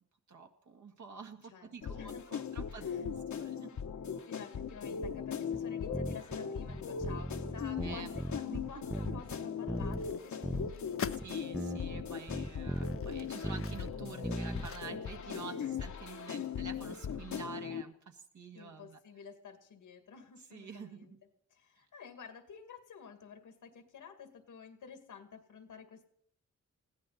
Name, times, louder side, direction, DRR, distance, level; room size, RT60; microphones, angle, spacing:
voice 1, 0.3-3.8 7.8-8.1 8.5-8.7 11.2-19.0 20.5-21.2, right 5 dB, 70° right, 4 dB, 1.9 m, -48 dB
voice 2, 1.5-3.5 4.3-11.2 12.1-12.2 12.8-13.6 15.2-15.7 16.2-16.7 18.5-21.1 21.5-26.1, left 6 dB, 90° left, 7 dB, 2.2 m, -51 dB
sound 1, 1.8-17.8, left 7 dB, 70° left, 1.1 m, -39 dB
sound 2, 5.5-5.6 5.9-6.4 6.7-8.6 8.9-9.4 9.7-10.1 10.4-10.7 11.2-11.3 11.5-14.0 14.2-14.7, right 1 dB, 5° right, 0.5 m, -38 dB
sound 3, 9.7-11.3 12.0-12.1 12.6-15.3 15.6-15.7, left 8 dB, 45° left, 0.6 m, -46 dB
20.5 x 15.5 x 4.1 m, 0.70 s
cardioid pair, 70°, 30 cm